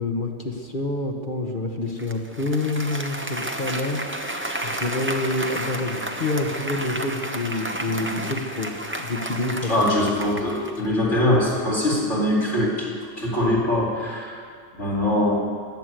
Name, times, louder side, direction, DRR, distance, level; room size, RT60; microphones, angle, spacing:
voice 1, 0.0-9.9 15.0-15.3, left 2 dB, 45° left, 2 dB, 1.4 m, -28 dB
Applause, 2.0-10.9, right 1 dB, 10° right, 0.8 m, -32 dB
voice 2, 9.6-14.4 14.7-15.4, left 1 dB, 65° left, -5 dB, 3.3 m, -22 dB
15.0 x 11.0 x 7.7 m, 2.2 s
omnidirectional pair, 1.3 m